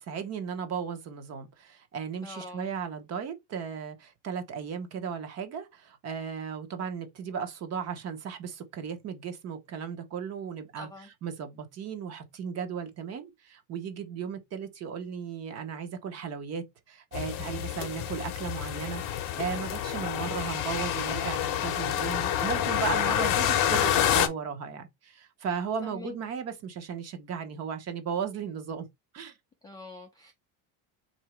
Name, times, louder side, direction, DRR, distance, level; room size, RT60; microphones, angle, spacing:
voice 1, 0.0-28.9 29.1-29.4, right 7 dB, 35° right, 1.0 m, -36 dB
voice 2, 2.2-2.8 10.8-11.1 25.8-26.1 29.6-30.3, left 2 dB, 10° left, 0.4 m, -44 dB
sound 1, 17.1-24.3, left 10 dB, 50° left, 0.8 m, -28 dB
3.9 x 2.7 x 4.4 m
cardioid pair, 170°, 43 cm